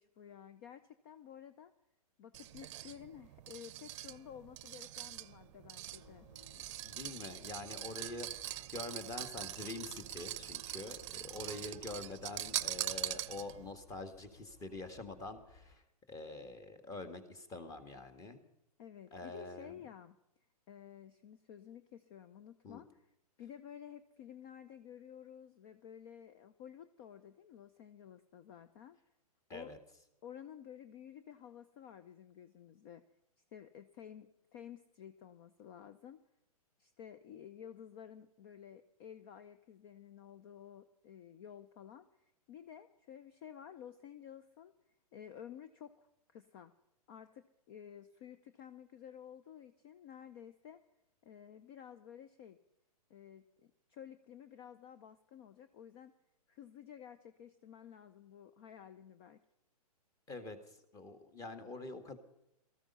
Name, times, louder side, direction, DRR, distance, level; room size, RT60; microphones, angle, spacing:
voice 1, 0.0-1.7 2.2-6.3 18.8-20.2 20.7-23.0 23.4-29.0 29.5-29.7 30.2-33.0 33.5-36.2 36.8-44.7 45.1-46.7 47.1-50.8 51.2-52.6 53.1-56.1 56.5-59.4, left 9 dB, 40° left, 11 dB, 0.7 m, -53 dB
sound 1, 2.3-13.7, right 13 dB, 50° right, 0.7 m, -43 dB
sound 2, 5.9-15.8, left 2 dB, 55° left, 6.0 m, -61 dB
voice 2, 6.8-18.4 19.1-19.7 22.6-22.8 29.5-29.8 60.3-62.2, left 2 dB, 15° left, 10 dB, 1.6 m, -46 dB
18.0 x 14.0 x 5.6 m, 0.83 s
hypercardioid pair, 135°, 20 cm